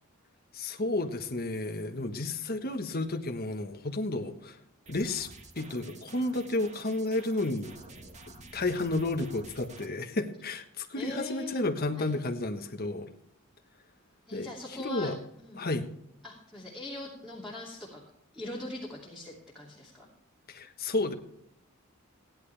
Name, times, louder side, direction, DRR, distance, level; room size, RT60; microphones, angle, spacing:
voice 1, 0.5-4.6 4.9-5.3 5.5-7.7 8.5-13.1 14.3-15.2 15.6-15.9 20.5-21.1, left 2 dB, 45° left, 6 dB, 1.4 m, -32 dB
sound 1, 4.9-9.9, right 2 dB, 35° right, 1.6 m, -50 dB
voice 2, 10.9-11.6 12.0-12.1 14.3-15.1 15.4-15.7 16.2-18.0 18.3-20.1, left 1 dB, ahead, -5 dB, 2.7 m, -41 dB
16.5 x 11.0 x 3.4 m, 0.76 s
head